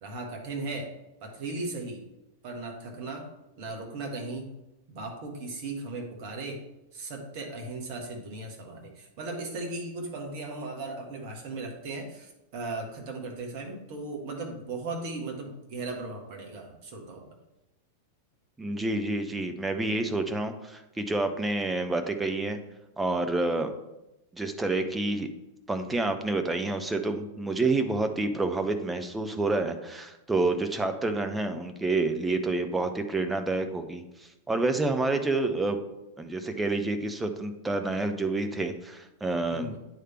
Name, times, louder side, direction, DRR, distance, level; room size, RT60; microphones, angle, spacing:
voice 1, 0.0-0.9 1.2-2.0 2.4-3.3 3.6-4.5 4.9-6.6 6.9-17.2 39.5-39.8, right 2 dB, 45° right, 1 dB, 1.4 m, -37 dB
voice 2, 18.6-22.6 23.0-23.7 24.3-25.3 25.7-34.0 34.5-35.8 36.2-39.7, right 2 dB, 10° right, 7 dB, 0.6 m, -28 dB
9.0 x 3.3 x 4.4 m, 0.94 s
figure-of-eight pair, 95°, 0 cm